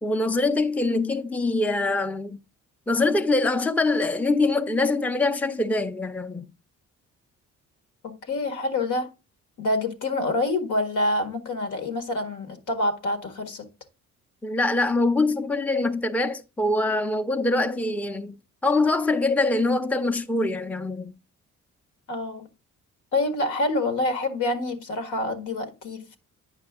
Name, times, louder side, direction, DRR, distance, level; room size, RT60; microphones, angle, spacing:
voice 1, 0.0-2.4 2.9-6.5 14.4-18.4 18.6-21.1, left 2 dB, 5° left, 0.6 m, -24 dB
voice 2, 8.0-9.1 9.6-13.7 22.1-22.5 23.1-26.2, left 2 dB, 80° left, 1.8 m, -27 dB
9.0 x 5.7 x 3.6 m
cardioid pair, 90°, 30 cm